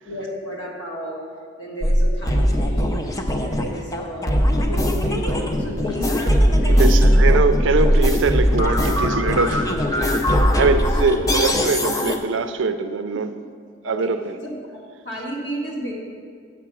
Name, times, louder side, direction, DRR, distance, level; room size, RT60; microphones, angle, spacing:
voice 1, 0.0-1.2 1.6-3.0 3.4-7.1 8.8-9.2 9.5-9.6 10.4-11.2 13.8-14.1 14.4-15.9, right 1 dB, 65° left, 1.7 m, -32 dB
sound 1, 1.8-12.2, equal, 20° left, 0.5 m, -19 dB
voice 2, 6.7-9.6 10.0-10.2 10.6-13.3 13.8-14.4, right 4 dB, 75° right, 0.4 m, -22 dB
7.1 x 5.8 x 6.0 m
head